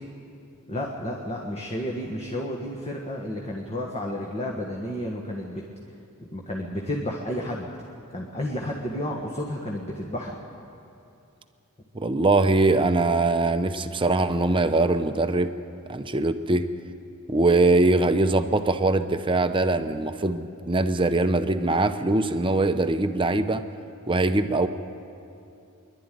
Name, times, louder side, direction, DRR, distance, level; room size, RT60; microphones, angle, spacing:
voice 1, 0.7-5.6 6.2-7.7 8.1-10.4, left 1 dB, 30° left, -1 dB, 1.6 m, -31 dB
voice 2, 11.9-15.5 15.9-16.7 17.3-23.6 24.1-24.7, right 2 dB, 25° right, 9 dB, 0.7 m, -22 dB
25.0 x 11.5 x 9.3 m, 2.7 s
head